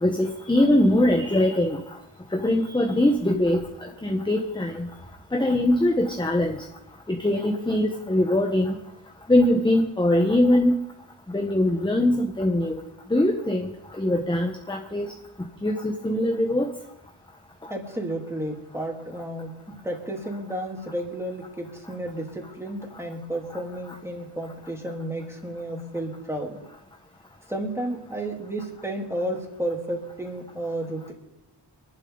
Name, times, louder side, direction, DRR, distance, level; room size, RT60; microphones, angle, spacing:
voice 1, 0.0-1.8 2.3-3.6 4.0-4.9 5.3-6.6 7.1-8.7 9.3-10.7 11.3-12.8 13.1-13.7 14.0-15.1 15.6-16.7, left 1 dB, 10° left, 3 dB, 1.3 m, -22 dB
voice 2, 17.7-26.6 27.5-31.1, right 1 dB, 5° right, 0 dB, 3.1 m, -32 dB
24.5 x 11.5 x 4.1 m, 0.86 s
wide cardioid pair, 110°, 41 cm